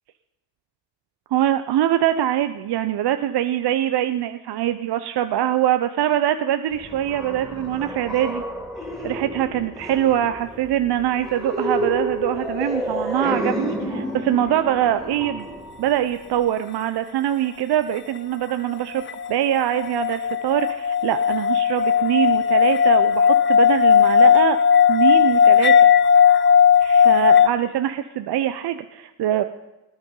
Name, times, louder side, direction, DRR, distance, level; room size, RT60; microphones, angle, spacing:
voice 1, 1.3-8.4 9.0-15.5 15.8-19.0 19.3-24.6 24.9-25.9 26.8-29.4, right 11 dB, 55° right, 10 dB, 0.7 m, -23 dB
sound 1, 6.7-16.4, equal, ahead, 3.5 m, -30 dB
sound 2, 19.1-27.5, left 7 dB, 25° left, 0.5 m, -16 dB
19.5 x 9.7 x 3.9 m, 1.0 s
hypercardioid pair, 50°, 49 cm